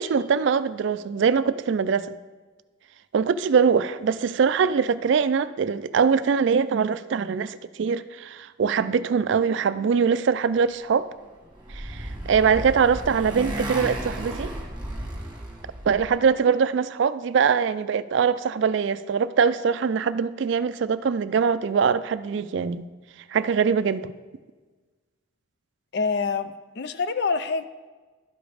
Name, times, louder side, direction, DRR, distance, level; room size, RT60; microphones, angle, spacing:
voice 1, 0.0-2.1 3.1-11.1 11.7-14.5 15.9-22.9 23.3-24.1, right 6 dB, 65° right, 14 dB, 0.3 m, -23 dB
Motorcycle, 11.2-16.2, right 1 dB, 25° right, 1.4 m, -34 dB
voice 2, 25.9-27.7, left 4 dB, 55° left, 11 dB, 0.4 m, -26 dB
12.0 x 5.1 x 4.9 m, 1.3 s
head